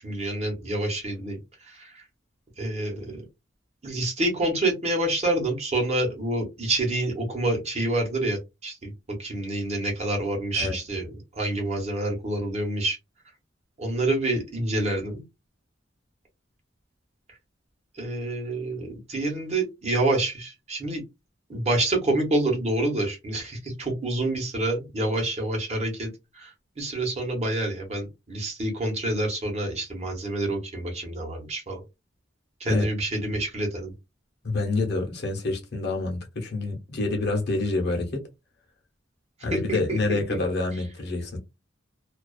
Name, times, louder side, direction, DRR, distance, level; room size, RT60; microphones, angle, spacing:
voice 1, 0.0-2.1 2.6-3.2 3.8-8.9 9.2-11.1 11.3-13.0 13.8-15.2 17.9-21.0 21.5-31.8 32.6-33.9 39.5-40.4, right 2 dB, 35° right, 0.9 m, -27 dB
voice 2, 34.4-38.2 39.4-41.4, left 3 dB, 60° left, 0.8 m, -27 dB
2.4 x 2.3 x 2.3 m
head